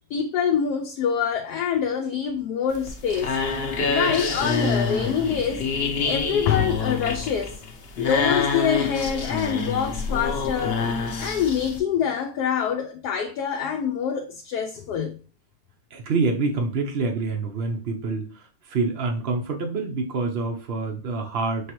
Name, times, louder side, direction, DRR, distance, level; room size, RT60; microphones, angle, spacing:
voice 1, 0.1-3.3 3.9-5.6 6.0-7.6 8.0-10.8 11.2-15.2, left 7 dB, 75° left, 1.0 m, -25 dB
sound 1, 2.7-11.8, left 4 dB, 55° left, 0.7 m, -27 dB
voice 2, 15.9-21.7, right 3 dB, 60° right, 0.6 m, -26 dB
5.3 x 3.1 x 3.0 m
omnidirectional pair, 1.9 m